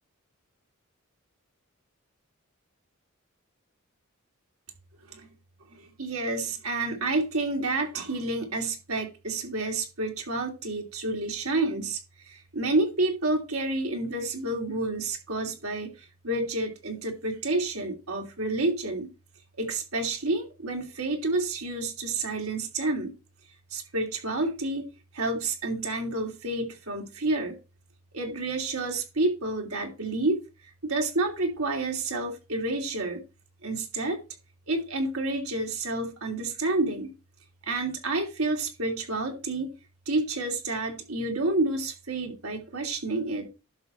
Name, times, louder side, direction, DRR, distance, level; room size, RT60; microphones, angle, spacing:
voice 1, 5.7-19.1 19.6-23.1 23.7-24.9 25.1-27.6 28.1-30.4 30.8-33.2 33.6-34.2 34.7-37.1 37.6-39.7 40.1-43.5, right 2 dB, 80° right, 2.9 m, -29 dB
11.0 x 6.4 x 4.3 m
head